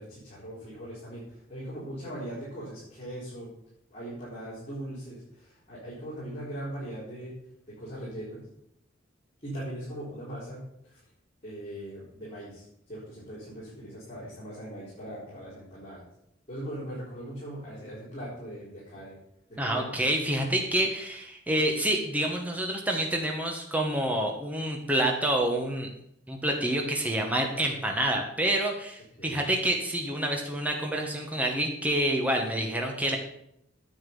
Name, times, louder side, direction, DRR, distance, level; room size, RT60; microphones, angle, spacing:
voice 1, 0.0-3.5 3.9-7.3 7.8-8.4 9.4-11.0 11.4-12.6 12.9-16.0 16.5-19.2 19.5-19.9 29.2-29.5, right 1 dB, 30° left, -10 dB, 4.5 m, -40 dB
voice 2, 19.6-25.9 26.3-33.2, right 1 dB, 10° right, 1 dB, 1.4 m, -28 dB
9.6 x 9.0 x 5.5 m, 0.75 s
head